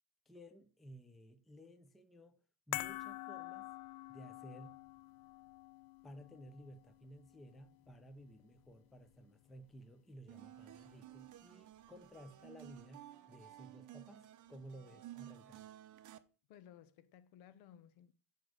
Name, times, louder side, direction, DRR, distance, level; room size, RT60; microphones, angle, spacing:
voice 1, 0.3-2.4 2.7-3.7 4.1-4.8 6.0-15.7, equal, ahead, 0.4 m, -56 dB
sound 1, 2.7-9.1 9.4-9.5, left 17 dB, 55° left, 0.5 m, -48 dB
sound 2, 10.3-16.2, right 13 dB, 40° right, 0.7 m, -55 dB
voice 2, 16.5-18.1, left 10 dB, 80° left, 0.9 m, -59 dB
7.0 x 4.7 x 6.3 m
cardioid pair, 145°, 48 cm